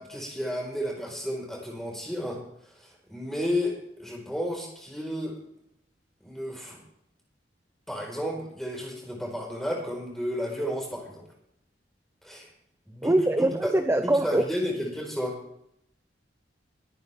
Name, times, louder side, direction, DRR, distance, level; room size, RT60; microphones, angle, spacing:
voice 1, 0.0-2.4 2.8-5.3 6.2-6.8 7.9-11.3 12.2-12.5 12.9-13.7 14.0-15.4, equal, ahead, 4.3 m, -32 dB
voice 2, 13.0-14.5, right 1 dB, 15° right, 0.5 m, -23 dB
23.0 x 9.4 x 3.4 m
head